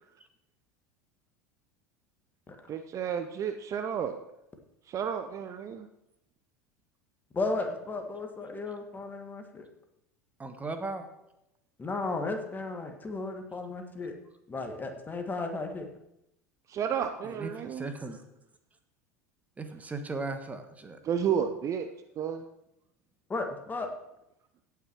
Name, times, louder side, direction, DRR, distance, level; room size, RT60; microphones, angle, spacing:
voice 1, 2.7-4.2 4.9-5.9 16.7-17.9 21.0-21.9 22.2-22.4, right 8 dB, 40° right, 8 dB, 0.7 m, -31 dB
voice 2, 7.3-9.7 11.8-14.1 14.5-15.9 23.3-23.9, left 3 dB, 20° left, 5 dB, 1.8 m, -34 dB
voice 3, 10.4-11.1 17.3-18.2 19.6-21.0, right 3 dB, 15° right, 7 dB, 1.4 m, -37 dB
16.5 x 5.9 x 4.6 m, 0.83 s
hypercardioid pair, 75°, 9 cm